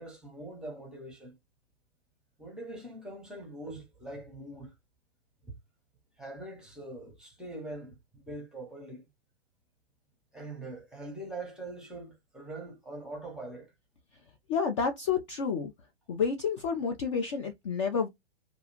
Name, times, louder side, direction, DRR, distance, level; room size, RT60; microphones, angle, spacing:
voice 1, 0.0-1.4 2.4-4.7 5.5-5.6 6.2-9.0 10.3-13.7, right 2 dB, ahead, 0.7 m, -43 dB
voice 2, 14.5-15.7 16.1-18.1, left 6 dB, 30° left, 0.4 m, -29 dB
2.5 x 2.2 x 2.8 m
figure-of-eight pair, 115°, 32 cm